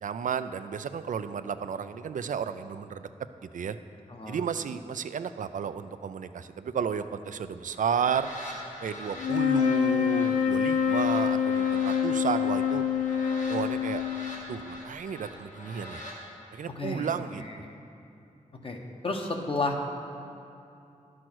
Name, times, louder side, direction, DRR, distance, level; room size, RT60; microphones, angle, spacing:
voice 1, 0.0-3.1 3.5-3.8 4.3-8.3 8.8-12.8 13.5-14.0 14.5-16.0 16.5-17.6, right 7 dB, 75° right, 11 dB, 0.4 m, -32 dB
voice 2, 4.1-4.4 16.8-17.8 18.6-18.8 19.0-19.8, left 2 dB, 45° left, 2 dB, 1.1 m, -32 dB
sound 1, 7.7-16.2, left 1 dB, 70° left, 2.0 m, -44 dB
sound 2, 9.2-14.6, left 8 dB, 85° left, 0.7 m, -26 dB
11.0 x 6.2 x 6.1 m, 2.6 s
wide cardioid pair, 110°, 14 cm